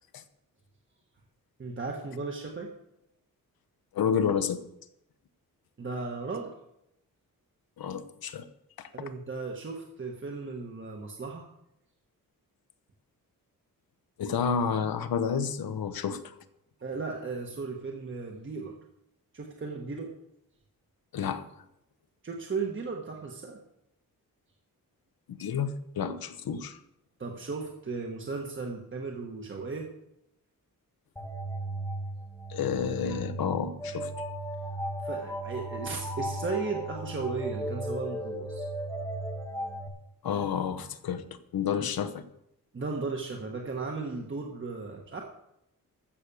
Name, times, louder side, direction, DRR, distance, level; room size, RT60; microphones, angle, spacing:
voice 1, 1.6-2.7 5.8-6.5 8.9-11.5 16.8-18.8 19.3-20.1 22.2-23.6 27.2-29.9 35.0-38.6 41.8-41.9 42.7-45.2, right 4 dB, 35° right, 1 dB, 1.4 m, -35 dB
voice 2, 3.9-4.6 7.8-8.5 8.8-8.9 14.2-16.2 21.1-21.4 25.4-26.8 32.5-34.3 40.2-41.2 41.5-42.2, left 7 dB, 85° left, 10 dB, 1.0 m, -30 dB
sound 1, 31.2-39.9, right 1 dB, 10° left, 1.3 m, -36 dB
14.5 x 6.5 x 7.0 m, 0.81 s
wide cardioid pair, 155°, 35 cm